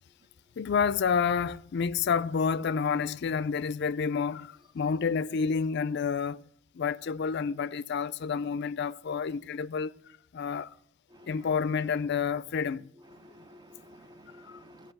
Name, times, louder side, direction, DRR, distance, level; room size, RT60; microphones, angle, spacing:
voice 1, 0.6-6.4 6.7-10.7 11.3-12.9 14.4-14.6, left 6 dB, 55° left, 0.4 m, -29 dB
voice 2, 11.1-11.5 13.1-14.9, equal, 20° right, 0.5 m, -52 dB
15.5 x 5.3 x 7.8 m
head